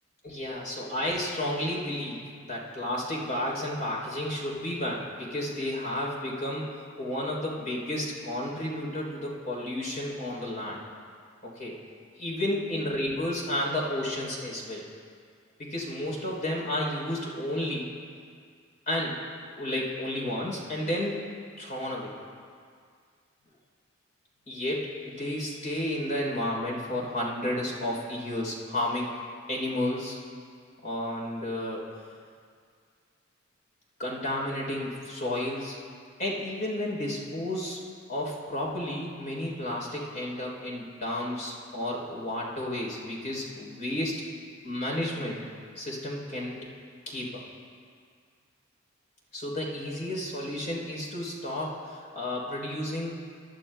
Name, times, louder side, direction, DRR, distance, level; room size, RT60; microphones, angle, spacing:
voice 1, 0.2-10.8 11.4-11.8 12.1-14.8 15.6-17.9 18.9-19.2 19.6-21.2 21.6-22.1 24.5-29.2 29.5-30.2 30.8-31.8 34.0-35.8 36.2-37.8 38.1-44.2 44.6-45.4 45.8-46.5 47.1-47.4 49.3-53.2, left 1 dB, 40° left, -3 dB, 3.4 m, -32 dB
23.0 x 11.5 x 2.3 m, 2.1 s
head